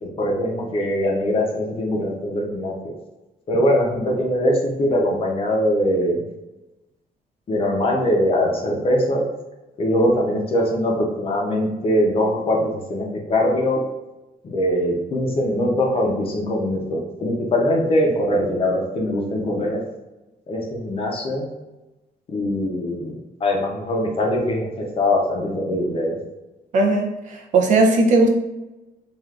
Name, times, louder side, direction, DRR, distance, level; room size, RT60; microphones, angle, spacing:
voice 1, 0.0-2.7 3.5-6.2 7.5-9.2 9.8-13.8 14.4-19.8 20.5-21.5 22.3-23.1 23.4-26.2, left 1 dB, 35° left, 0 dB, 0.6 m, -22 dB
voice 2, 26.7-28.3, right 2 dB, 55° right, 2 dB, 0.5 m, -17 dB
3.2 x 2.4 x 2.4 m, 1.0 s
cardioid pair, 150°, 16 cm